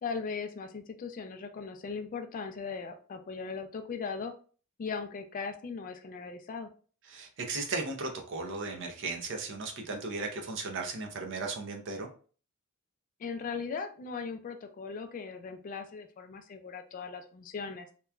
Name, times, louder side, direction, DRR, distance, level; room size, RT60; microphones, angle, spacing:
voice 1, 0.0-4.3 4.8-6.7 13.2-17.9, left 5 dB, 40° left, 6 dB, 0.3 m, -38 dB
voice 2, 7.1-12.1, right 3 dB, 60° right, 2 dB, 0.6 m, -36 dB
2.9 x 2.2 x 2.3 m, 0.41 s
head